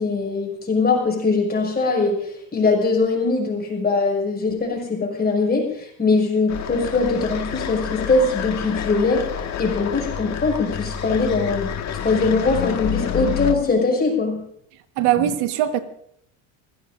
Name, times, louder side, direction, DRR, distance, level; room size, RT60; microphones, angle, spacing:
voice 1, 0.0-9.2 9.6-11.7 12.0-14.4, left 3 dB, 20° left, 6.6 m, -21 dB
sound 1, 6.5-13.5, left 9 dB, 40° left, 2.0 m, -28 dB
voice 2, 15.0-15.8, right 12 dB, 70° right, 1.7 m, -20 dB
29.0 x 16.0 x 2.7 m
supercardioid pair, 110°, 43 cm